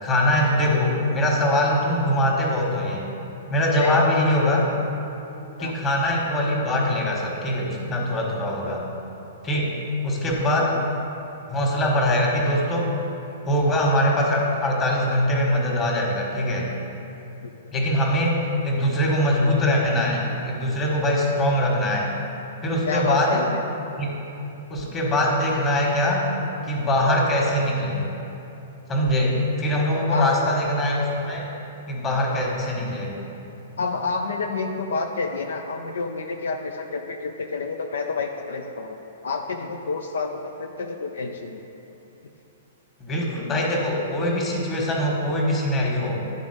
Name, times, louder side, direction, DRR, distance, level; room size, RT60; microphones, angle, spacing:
voice 1, 0.0-3.1 3.5-4.7 5.6-8.9 9.4-9.8 10.0-10.8 11.5-12.9 13.4-16.7 17.7-22.1 22.6-23.5 24.0-24.1 24.7-26.3 26.7-28.1 28.9-31.5 31.9-33.1 43.0-46.2, left 1 dB, 25° left, -2 dB, 1.5 m, -22 dB
voice 2, 22.8-23.6 29.8-30.5 33.8-39.0 39.2-41.7, left 4 dB, 75° left, 4 dB, 0.4 m, -29 dB
10.5 x 3.9 x 5.0 m, 2.9 s
hypercardioid pair, 115°, 0 cm